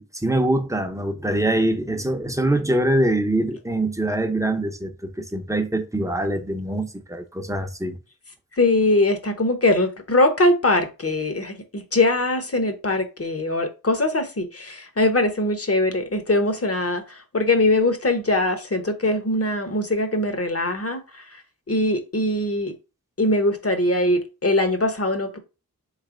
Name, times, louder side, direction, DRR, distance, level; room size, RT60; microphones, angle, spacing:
voice 1, 0.0-8.0, right 1 dB, 10° right, 0.7 m, -24 dB
voice 2, 8.6-21.2 21.7-22.7 23.2-25.4, left 2 dB, 40° left, 0.9 m, -22 dB
4.2 x 3.2 x 3.7 m
wide cardioid pair, 70°, 35 cm